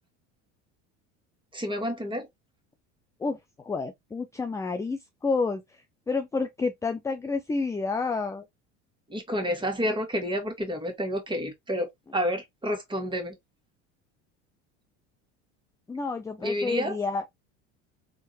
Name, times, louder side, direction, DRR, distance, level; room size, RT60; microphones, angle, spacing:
voice 1, 1.5-2.3 9.1-13.3 16.4-17.0, equal, 15° right, 1.6 m, -29 dB
voice 2, 3.2-8.4 15.9-17.3, left 4 dB, 10° left, 0.3 m, -30 dB
3.6 x 2.6 x 2.8 m
hypercardioid pair, 85°, 36 cm